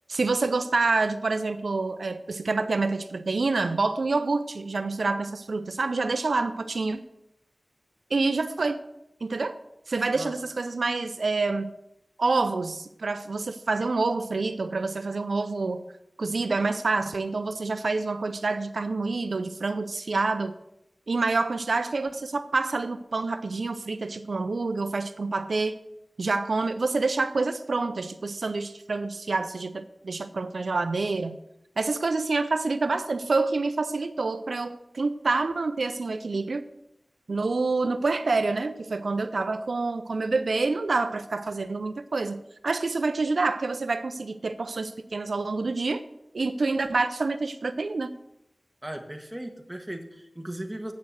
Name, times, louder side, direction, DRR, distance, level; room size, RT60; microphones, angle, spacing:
voice 1, 0.1-7.0 8.1-8.8 9.2-9.6 9.9-11.7 12.2-15.8 16.2-20.5 21.1-25.7 26.2-31.4 31.8-36.6 37.3-46.0 46.3-48.1, right 3 dB, 80° right, 11 dB, 0.5 m, -27 dB
voice 2, 48.8-50.9, right 1 dB, 15° right, 4 dB, 1.4 m, -37 dB
8.3 x 6.5 x 7.6 m, 0.85 s
wide cardioid pair, 65°, 0 cm